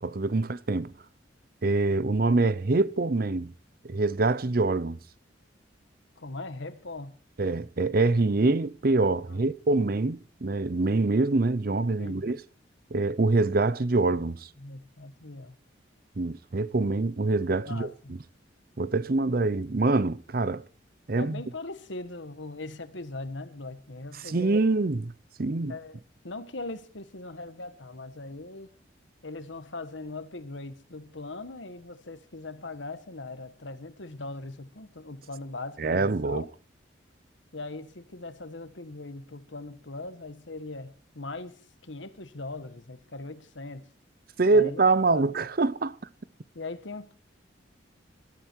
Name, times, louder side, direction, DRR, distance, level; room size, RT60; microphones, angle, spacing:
voice 1, 0.0-0.9 1.6-3.5 3.8-5.0 7.4-12.4 12.9-14.5 16.2-18.2 18.8-20.6 21.1-21.4 24.2-25.1 25.4-25.7 35.8-36.5 44.4-45.9, right 3 dB, 50° right, 0.6 m, -25 dB
voice 2, 6.2-7.2 9.3-9.5 12.0-12.3 14.6-15.5 17.6-18.1 21.2-24.6 25.7-26.0 26.2-28.7 29.2-36.5 37.5-41.5 41.8-43.8 44.5-44.8 45.1-45.4 46.5-47.1, left 2 dB, 75° left, 1.5 m, -40 dB
20.5 x 12.5 x 4.6 m
head